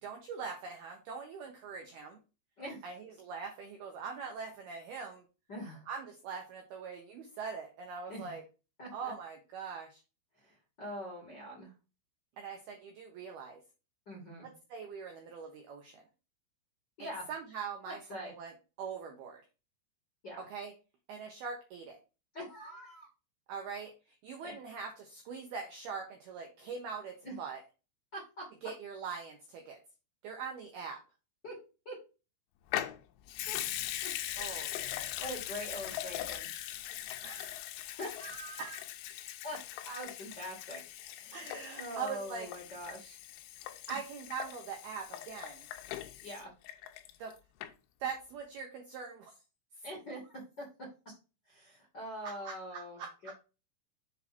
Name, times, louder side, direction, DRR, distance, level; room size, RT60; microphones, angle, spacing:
voice 1, 0.0-2.2 2.8-5.2 5.9-8.4 8.9-10.0 12.4-13.6 14.4-16.0 17.0-18.5 18.8-19.4 20.5-20.7 21.1-22.0 23.5-23.9 24.2-27.6 28.6-29.8 30.2-31.0 34.4-34.7 37.2-37.5 41.3-42.5 43.9-45.7 47.2-47.3 48.0-49.3 52.2-53.1, right 6 dB, 85° right, 2 dB, 2.2 m, -42 dB
voice 2, 5.5-5.9 8.1-8.3 8.8-9.1 10.3-11.7 14.0-14.5 17.0-17.3 17.8-18.3 20.2-20.5 22.3-23.1 24.4-24.5 26.6-26.7 27.2-27.3 28.1-28.4 31.4-31.5 31.8-31.9 33.5-33.6 34.0-34.1 34.7-36.5 37.8-38.8 39.4-39.6 39.8-40.8 41.1-43.2 43.9-44.0 46.2-46.5 49.8-50.6 51.4-53.3, equal, 55° left, -3 dB, 1.1 m, -44 dB
Water tap faucet / Sink (filling or washing) / Liquid, 32.7-47.3 47.6-47.7, left 13 dB, 80° left, 2.9 m, -41 dB
7.4 x 4.3 x 4.2 m, 0.31 s
omnidirectional pair, 6.0 m